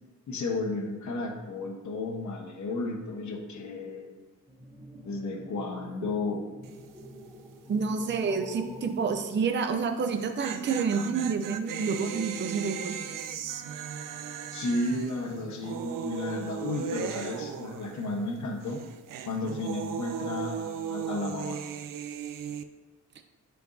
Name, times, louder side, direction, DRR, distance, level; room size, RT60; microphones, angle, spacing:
voice 1, 0.3-4.1 5.0-6.5 14.5-18.8 19.2-21.6, left 2 dB, 60° left, 1 dB, 1.2 m, -33 dB
sound 1, 4.5-10.4, left 1 dB, 5° right, 0.8 m, -47 dB
sound 2, 6.6-7.0 7.2-7.3 10.0-18.4 18.6-22.6, right 8 dB, 80° right, 0.5 m, -37 dB
voice 2, 7.7-13.0, right 5 dB, 35° right, 7 dB, 0.6 m, -29 dB
10.0 x 4.6 x 2.7 m, 1.2 s
cardioid pair, 90°, 32 cm